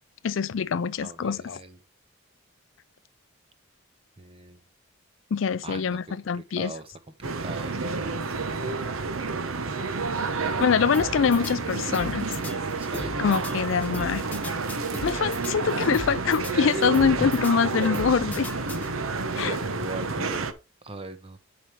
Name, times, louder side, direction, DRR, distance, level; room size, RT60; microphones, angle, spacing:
voice 1, 0.2-1.6 5.3-6.7 10.6-12.3 13.2-14.2 15.0-18.5 19.3-19.6, left 6 dB, 65° left, 0.4 m, -24 dB
voice 2, 1.0-1.8 4.2-4.6 5.6-6.0 6.3-7.9 10.0-10.8 12.8-13.2 17.2-17.3 19.3-20.5 20.8-21.4, right 1 dB, 25° right, 0.9 m, -39 dB
sound 1, 7.2-20.5, right 4 dB, 80° right, 0.9 m, -30 dB
sound 2, 10.9-19.3, left 1 dB, 5° left, 1.3 m, -40 dB
9.2 x 5.1 x 4.5 m
head